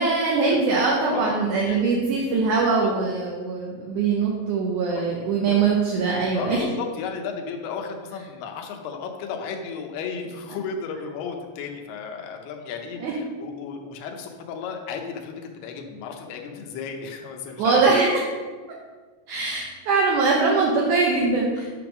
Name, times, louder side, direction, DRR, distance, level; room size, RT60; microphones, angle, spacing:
voice 1, 0.0-6.6 13.0-13.1 17.6-18.2 19.3-21.7, right 4 dB, 75° right, -2 dB, 1.9 m, -22 dB
voice 2, 6.4-18.1, left 5 dB, 90° left, 3 dB, 2.8 m, -34 dB
8.6 x 3.5 x 5.9 m, 1.4 s
omnidirectional pair, 4.5 m